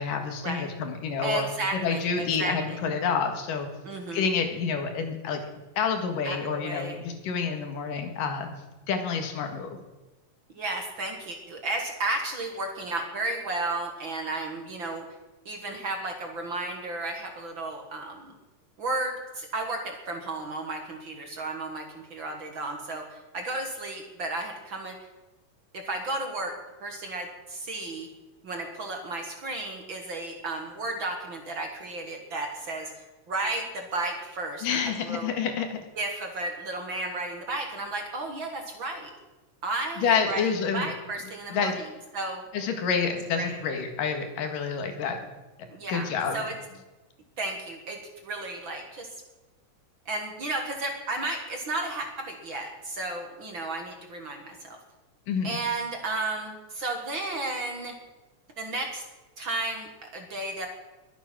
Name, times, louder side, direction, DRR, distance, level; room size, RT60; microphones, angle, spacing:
voice 1, 0.0-1.5 1.8-3.7 4.1-5.4 5.8-8.5 8.9-9.7 34.6-35.8 40.0-40.9 41.5-41.8 42.5-45.2 45.9-46.5 55.3-55.6, left 6 dB, 85° left, 6 dB, 3.4 m, -28 dB
voice 2, 1.2-2.8 3.8-4.3 6.2-7.0 10.5-15.0 15.5-18.3 18.8-25.0 25.7-28.1 28.4-35.3 36.0-39.1 39.6-41.9 42.1-42.4 43.4-43.6 45.7-46.5 47.4-49.1 50.1-54.8 55.4-58.0 58.6-59.0 59.4-60.7, right 2 dB, 45° right, 3 dB, 2.0 m, -33 dB
22.0 x 9.2 x 6.1 m, 1.1 s
omnidirectional pair, 3.8 m